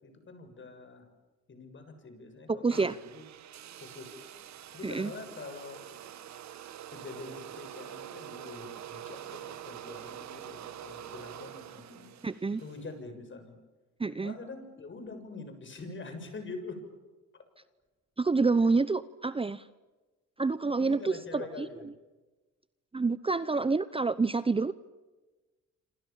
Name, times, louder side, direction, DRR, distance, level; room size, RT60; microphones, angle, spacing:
voice 1, 0.0-1.1 1.5-3.2 3.8-4.2 4.7-5.8 6.9-12.1 12.6-13.6 14.2-16.8 17.3-17.4 20.8-21.8, left 3 dB, 40° left, 7 dB, 7.2 m, -45 dB
voice 2, 2.5-3.0 4.8-5.1 12.2-12.6 14.0-14.3 18.2-19.7 20.4-21.9 22.9-24.7, right 4 dB, 20° right, 15 dB, 0.8 m, -28 dB
sound 1, 2.7-12.9, right 11 dB, 65° right, 1.5 m, -45 dB
27.5 x 26.5 x 7.3 m, 1.2 s
cardioid pair, 90°, 30 cm